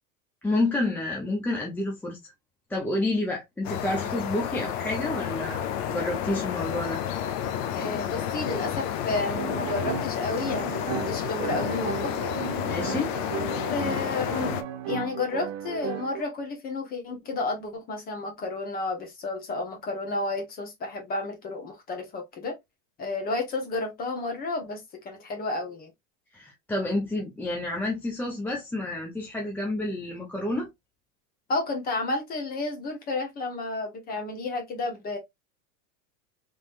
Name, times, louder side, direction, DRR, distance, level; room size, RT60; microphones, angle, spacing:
voice 1, 0.4-2.3 2.7-7.0 12.6-13.1 26.3-30.7, left 2 dB, 5° left, 0.5 m, -29 dB
sound 1, 3.6-14.6, left 9 dB, 50° left, 0.7 m, -30 dB
voice 2, 7.7-12.2 13.7-14.6 14.9-22.6 23.0-25.9 31.5-35.2, left 3 dB, 25° left, 1.1 m, -31 dB
sound 2, 9.1-16.2, right 10 dB, 45° right, 0.6 m, -35 dB
3.6 x 3.0 x 2.5 m
supercardioid pair, 155°, 39 cm